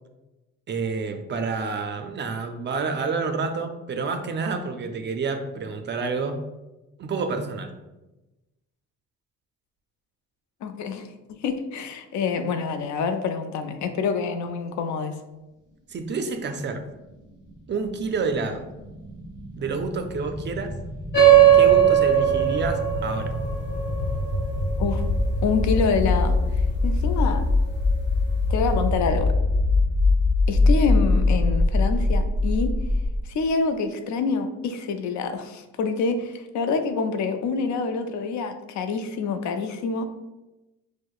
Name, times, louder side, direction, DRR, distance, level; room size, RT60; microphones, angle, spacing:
voice 1, 0.7-6.4 7.0-7.7 15.9-16.8 17.7-18.6 19.6-20.7 21.5-23.3, right 4 dB, 40° right, 6 dB, 0.4 m, -29 dB
voice 2, 10.6-15.2 24.8-25.0 25.4-26.4 26.8-27.4 28.5-29.4 30.5-32.7 33.3-40.1, left 5 dB, 70° left, 7 dB, 0.4 m, -26 dB
sound 1, 17.3-33.2, left 2 dB, 15° right, 1.2 m, -24 dB
sound 2, 21.1-26.1, right 10 dB, 35° left, 0.7 m, -19 dB
4.5 x 2.1 x 2.3 m, 1.0 s
cardioid pair, 90°, 30 cm